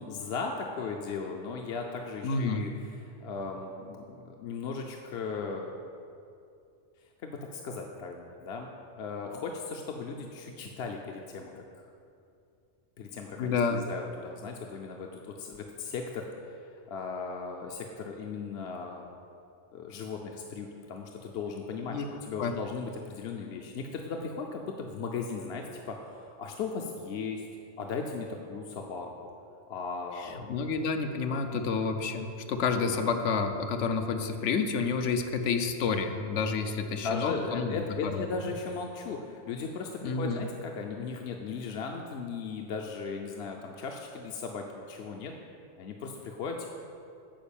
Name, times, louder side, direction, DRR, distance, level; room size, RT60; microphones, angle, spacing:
voice 1, 0.0-2.7 3.1-5.7 7.2-8.7 9.0-11.9 13.0-16.3 16.6-19.0 19.7-27.5 27.8-29.1 29.7-30.5 32.8-33.2 36.9-45.3 45.8-46.7, left 4 dB, 65° left, 2 dB, 0.9 m, -37 dB
voice 2, 2.2-2.6 13.4-13.9 21.9-22.0 22.4-22.5 30.2-37.8 38.1-38.2 40.0-40.4, left 5 dB, 90° left, 6 dB, 1.1 m, -29 dB
8.9 x 5.1 x 7.1 m, 2.5 s
omnidirectional pair, 1.2 m